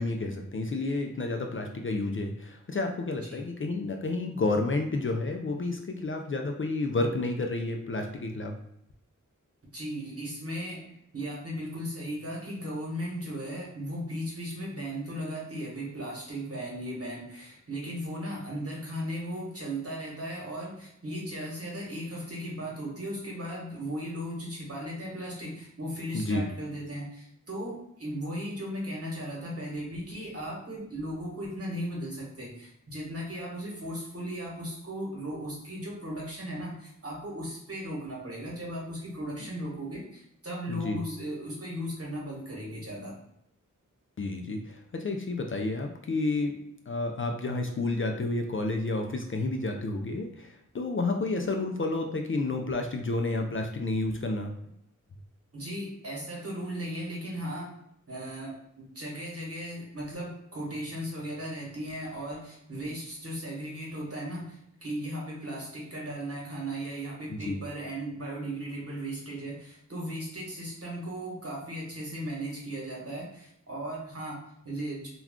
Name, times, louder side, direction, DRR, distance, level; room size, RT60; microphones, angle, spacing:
voice 1, 0.0-8.5 26.1-26.5 39.4-39.5 40.7-41.0 44.2-46.5 46.9-54.5 67.3-67.6, left 2 dB, 40° left, 3 dB, 0.4 m, -30 dB
voice 2, 9.7-10.9 11.1-43.1 55.5-57.7 58.1-75.1, equal, 45° right, -3 dB, 1.2 m, -37 dB
2.3 x 2.3 x 3.5 m, 0.75 s
cardioid pair, 45°, 32 cm